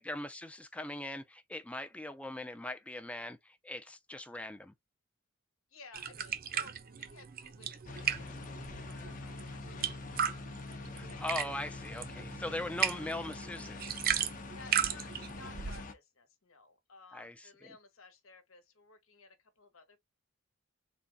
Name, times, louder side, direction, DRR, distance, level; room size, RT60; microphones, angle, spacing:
voice 1, 0.0-4.7 11.0-13.9 17.1-17.8, left 1 dB, 5° left, 0.3 m, -40 dB
voice 2, 5.7-9.9 10.7-11.5 12.4-13.0 14.5-20.0, left 3 dB, 80° left, 1.2 m, -57 dB
sound 1, 5.9-15.8, right 8 dB, 45° right, 0.5 m, -37 dB
Steam Tractor, 7.9-15.9, left 3 dB, 40° left, 0.7 m, -45 dB
4.0 x 2.4 x 3.4 m
head